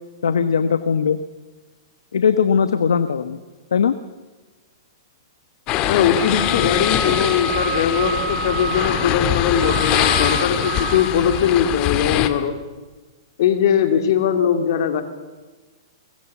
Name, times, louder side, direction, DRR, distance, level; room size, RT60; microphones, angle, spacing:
voice 1, 0.2-1.2 2.1-3.4 3.7-3.9, left 6 dB, 90° left, 11 dB, 1.1 m, -19 dB
sound 1, 5.7-12.3, left 12 dB, 35° left, 1.9 m, -23 dB
voice 2, 5.9-12.6 13.4-15.0, left 8 dB, 60° left, 8 dB, 3.0 m, -20 dB
Wind instrument woodwind instrument, 6.2-11.5, right 4 dB, 15° right, 6.3 m, -29 dB
23.0 x 20.0 x 7.2 m, 1.3 s
hypercardioid pair, 135°, 2 cm